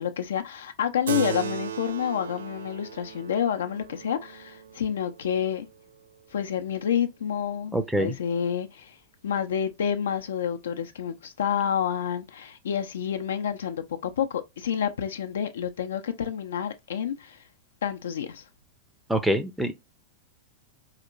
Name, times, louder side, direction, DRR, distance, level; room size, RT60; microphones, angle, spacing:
voice 1, 0.0-5.7 6.3-8.9 9.2-17.4 17.8-18.4, left 8 dB, 65° left, 0.5 m, -29 dB
Keyboard (musical), 1.1-5.9, right 8 dB, 65° right, 0.4 m, -36 dB
voice 2, 7.7-8.1 19.1-19.7, right 1 dB, 5° right, 0.5 m, -25 dB
4.3 x 2.9 x 2.4 m
figure-of-eight pair, 95°, 0 cm